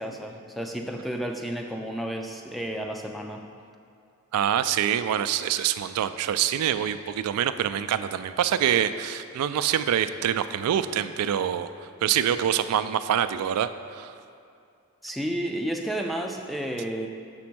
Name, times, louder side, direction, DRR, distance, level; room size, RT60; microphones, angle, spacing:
voice 1, 0.0-3.4 15.0-17.1, right 1 dB, ahead, 3 dB, 0.3 m, -31 dB
voice 2, 4.3-11.7 12.0-14.1, right 9 dB, 85° right, 15 dB, 0.3 m, -25 dB
6.2 x 4.3 x 6.0 m, 2.4 s
head